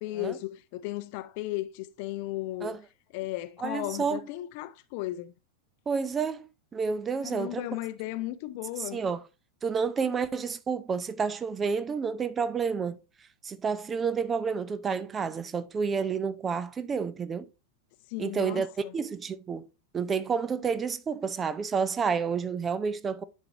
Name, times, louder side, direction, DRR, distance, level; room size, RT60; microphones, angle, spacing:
voice 1, 0.0-2.7 3.1-5.3 7.2-9.0 18.1-18.9, left 16 dB, 45° left, 0.6 m, -35 dB
voice 2, 3.6-4.2 5.9-7.8 8.8-9.2 9.6-13.0 13.4-17.5 18.2-19.7 19.9-23.2, right 5 dB, 20° right, 0.5 m, -30 dB
10.5 x 4.5 x 2.9 m
figure-of-eight pair, 90°, 0 cm